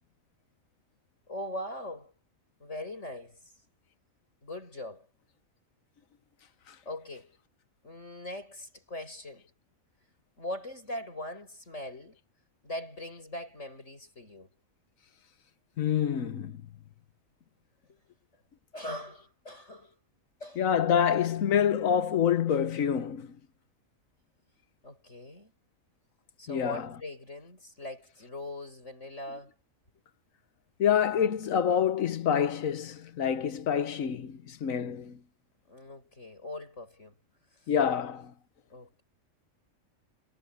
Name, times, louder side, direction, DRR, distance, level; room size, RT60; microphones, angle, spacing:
voice 1, 1.3-2.1 2.6-3.5 4.4-5.1 6.8-7.4 7.8-9.5 10.4-12.2 12.6-14.5 17.9-18.0 18.7-19.9 20.4-20.6 24.8-25.5 26.4-29.5 35.7-37.2 37.6-37.7 38.7-39.0, left 1 dB, 60° left, 8.4 m, -41 dB
voice 2, 15.8-16.6 20.6-23.3 26.5-26.9 30.8-35.2 37.7-38.3, left 8 dB, 90° left, 1.5 m, -27 dB
omnidirectional pair, 1.4 m